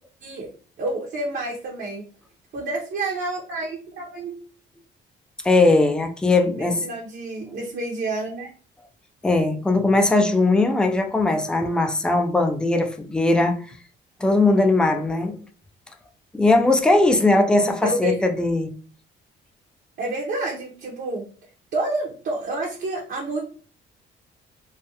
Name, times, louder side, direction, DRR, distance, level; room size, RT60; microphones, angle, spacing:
voice 1, 0.8-2.0 2.5-4.4 6.5-8.5 17.8-18.2 20.0-21.2 21.7-23.4, right 2 dB, 55° right, 0.7 m, -29 dB
voice 2, 5.4-6.8 9.2-13.6 14.2-15.4 16.3-18.7, left 2 dB, 5° left, 0.3 m, -19 dB
2.3 x 2.1 x 2.8 m
cardioid pair, 90°, 20 cm